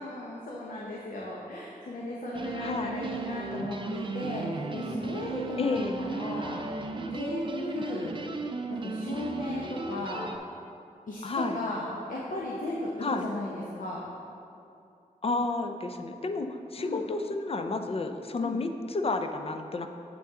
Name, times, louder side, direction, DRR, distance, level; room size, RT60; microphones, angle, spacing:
voice 1, 0.0-6.7 7.1-8.2 8.8-10.3 11.1-14.0 16.8-17.0 18.4-18.6, left 1 dB, 70° left, -4 dB, 1.0 m, -36 dB
sound 1, 2.3-10.4, right 3 dB, 35° right, 0.6 m, -35 dB
voice 2, 2.6-2.9 5.6-6.0 11.2-11.6 13.0-13.2 15.2-19.9, left 3 dB, 45° left, 6 dB, 0.5 m, -31 dB
8.3 x 6.3 x 3.7 m, 2.6 s
wide cardioid pair, 85°, 14 cm